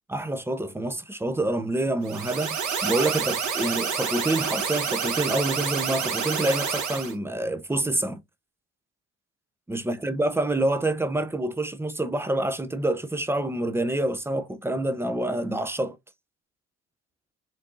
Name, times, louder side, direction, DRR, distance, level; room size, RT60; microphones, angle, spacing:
voice 1, 0.1-8.2 9.7-16.0, right 1 dB, 5° right, 0.5 m, -27 dB
sound 1, 2.0-7.1, right 6 dB, 55° right, 1.4 m, -28 dB
4.5 x 2.6 x 2.5 m
hypercardioid pair, 65°, 34 cm